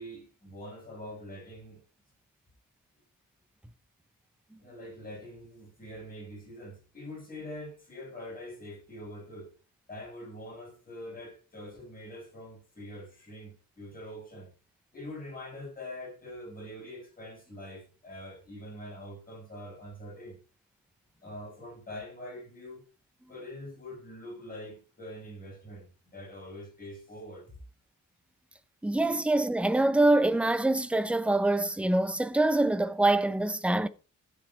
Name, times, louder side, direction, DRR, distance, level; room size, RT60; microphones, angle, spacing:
voice 1, 0.0-1.8 4.6-9.5 9.9-14.5 14.9-20.4 21.2-22.8 23.3-27.5, left 1 dB, 25° left, 7.3 m, -44 dB
voice 2, 28.8-33.9, right 2 dB, 5° right, 0.6 m, -25 dB
12.0 x 7.8 x 4.8 m
wide cardioid pair, 170°, 33 cm